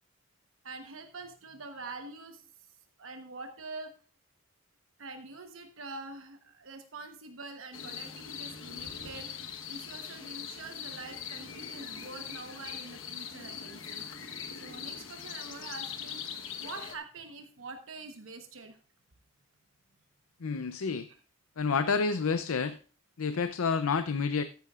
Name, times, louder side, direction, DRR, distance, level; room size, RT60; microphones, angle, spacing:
voice 1, 0.6-2.7 3.0-3.9 5.0-14.1 14.5-18.8, right 3 dB, 70° right, 6 dB, 1.1 m, -45 dB
sound 1, 7.7-17.0, left 7 dB, 65° left, 1.2 m, -41 dB
voice 2, 20.4-21.1 21.6-22.8 23.2-24.4, left 5 dB, 85° left, 11 dB, 0.5 m, -29 dB
14.0 x 10.5 x 2.4 m, 0.38 s
head